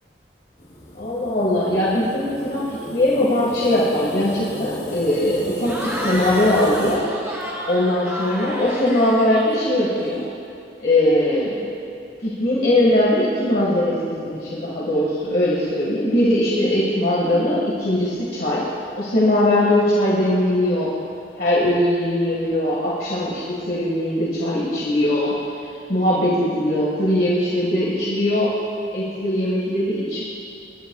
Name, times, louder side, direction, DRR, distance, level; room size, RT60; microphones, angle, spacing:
sound 1, 0.6-7.0, equal, 40° left, 3.2 m, -34 dB
voice 1, 1.0-7.0 7.7-10.2 10.8-11.6 12.2-18.6 19.0-20.9 21.4-23.4 23.7-25.4 25.9-28.5 28.9-30.2, left 1 dB, 55° left, -6 dB, 1.9 m, -20 dB
Cheering / Crowd, 5.6-10.2, equal, 15° right, 1.6 m, -31 dB
23.0 x 11.5 x 2.4 m, 2.6 s
head